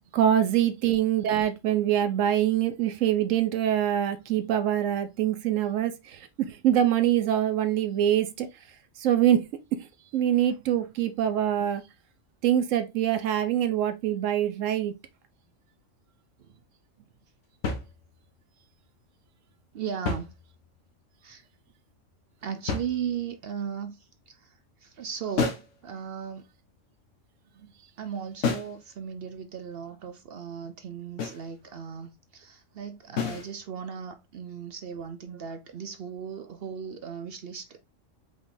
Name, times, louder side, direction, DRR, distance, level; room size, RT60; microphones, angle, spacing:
voice 1, 0.1-8.5 9.0-9.4 9.8-9.9 10.1-11.8 12.4-14.9, right 10 dB, 80° right, 1.0 m, -24 dB
sound 1, 17.6-18.4 19.9-20.9 22.7-23.5 25.4-25.8 28.4-28.8 31.2-31.5 33.2-33.5, left 5 dB, 70° left, 1.1 m, -31 dB
voice 2, 19.7-20.3 21.2-21.4 22.4-26.5 27.5-37.8, right 7 dB, 60° right, 0.7 m, -37 dB
5.1 x 3.6 x 2.6 m
omnidirectional pair, 1.3 m